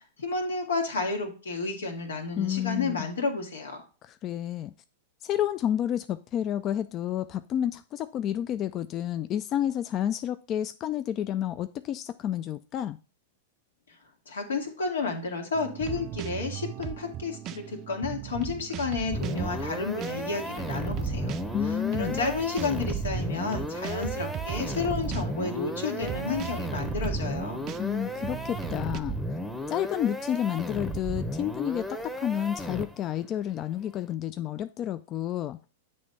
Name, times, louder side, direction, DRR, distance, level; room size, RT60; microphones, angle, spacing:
voice 1, 0.0-3.8 14.3-21.3 21.7-27.6, left 4 dB, 85° left, 1.8 m, -31 dB
voice 2, 2.4-3.1 4.0-4.7 5.2-13.0 21.5-22.2 27.8-29.2 29.7-35.6, left 10 dB, 35° left, 0.3 m, -30 dB
sound 1, 15.5-29.0, right 12 dB, 40° right, 0.4 m, -38 dB
Squelchy alarm, 19.1-33.2, equal, 5° left, 0.8 m, -34 dB
7.9 x 3.2 x 5.3 m
hypercardioid pair, 115°, 0 cm